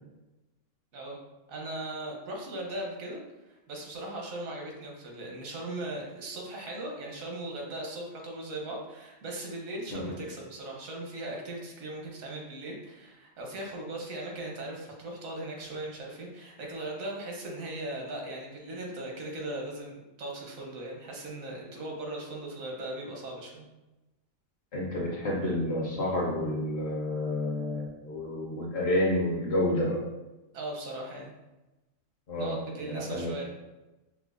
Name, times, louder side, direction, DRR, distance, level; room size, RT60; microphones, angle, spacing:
voice 1, 1.5-3.2 3.5-23.6 30.5-31.3 32.4-33.4, right 1 dB, 85° right, -1 dB, 1.2 m, -38 dB
voice 2, 24.7-30.0 32.3-33.3, left 1 dB, 60° left, -2 dB, 0.9 m, -29 dB
4.8 x 2.2 x 2.4 m, 1.0 s
omnidirectional pair, 1.4 m